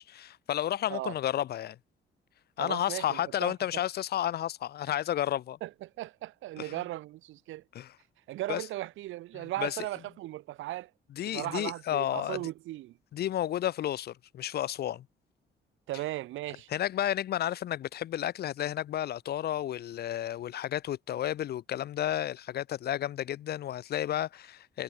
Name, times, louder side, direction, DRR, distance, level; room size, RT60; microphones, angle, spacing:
voice 1, 0.0-1.8 2.6-5.6 6.6-6.8 7.7-7.9 8.5-8.6 9.3-9.8 11.2-12.4 13.1-15.1 16.7-24.8, left 11 dB, 55° left, 0.4 m, -32 dB
voice 2, 2.6-3.8 5.6-7.6 8.3-10.9 11.2-13.0 15.9-16.7, right 16 dB, 80° right, 0.6 m, -37 dB
cardioid pair, 90°, 20 cm